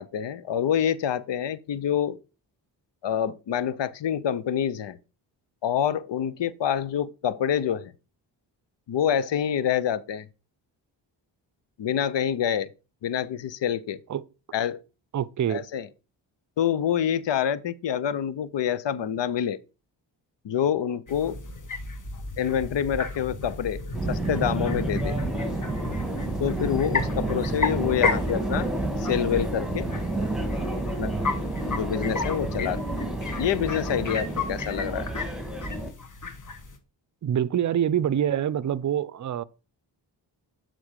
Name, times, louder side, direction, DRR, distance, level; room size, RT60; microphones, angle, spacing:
voice 1, 0.0-2.2 3.0-5.0 5.6-7.9 8.9-10.3 11.8-12.7 13.0-14.0 14.5-14.8 15.5-15.9 16.6-19.6 20.4-21.4 22.4-23.8 24.1-25.2 26.4-28.7 29.0-29.9 31.0-31.1 31.7-32.8 33.4-35.1, left 9 dB, 65° left, 0.9 m, -27 dB
voice 2, 15.1-15.7 37.2-39.4, right 9 dB, 40° right, 0.6 m, -25 dB
sound 1, 21.1-36.8, left 4 dB, 40° left, 1.7 m, -34 dB
Subway metro underground, 23.9-35.9, right 2 dB, ahead, 1.9 m, -30 dB
7.1 x 3.9 x 6.4 m
supercardioid pair, 50°, 47 cm